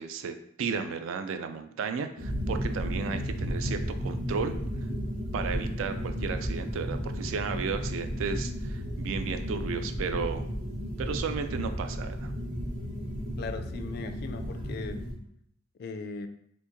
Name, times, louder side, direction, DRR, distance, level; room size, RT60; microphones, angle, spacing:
voice 1, 0.0-4.5 5.3-10.4 11.0-12.3, right 5 dB, 70° right, 8 dB, 0.3 m, -34 dB
sound 1, 2.2-15.1, equal, 40° right, 0.8 m, -33 dB
voice 2, 13.4-15.1 15.8-16.3, left 4 dB, 50° left, 8 dB, 0.3 m, -38 dB
2.9 x 2.6 x 3.5 m, 0.69 s
head